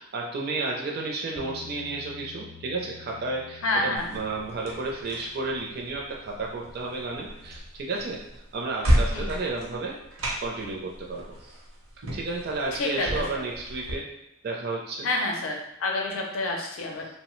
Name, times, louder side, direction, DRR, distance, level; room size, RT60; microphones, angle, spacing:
voice 1, 0.0-8.2 8.5-10.0 10.4-11.5 12.1-14.1 14.4-15.1, right 3 dB, 50° right, -1 dB, 0.4 m, -32 dB
Bass guitar, 1.4-7.6, left 6 dB, 35° left, 0.4 m, -49 dB
voice 2, 3.6-4.1 9.1-9.4 12.7-13.5 15.0-17.1, left 2 dB, 85° left, 1 dB, 0.6 m, -28 dB
sound 1, 4.0-14.0, equal, 85° right, 0.7 m, -32 dB
2.8 x 2.0 x 3.0 m, 0.87 s
head